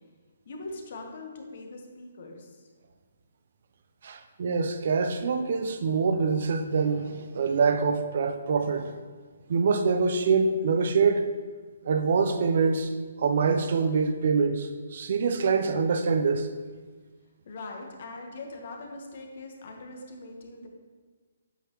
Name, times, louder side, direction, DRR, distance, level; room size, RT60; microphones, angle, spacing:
voice 1, 0.4-2.7 17.4-20.7, left 2 dB, 55° left, 2 dB, 1.2 m, -41 dB
voice 2, 4.0-9.0 9.5-11.3 11.8-12.9 13.2-16.5, right 5 dB, 55° right, 8 dB, 0.6 m, -25 dB
8.2 x 5.6 x 3.0 m, 1.4 s
hypercardioid pair, 150°, 0 cm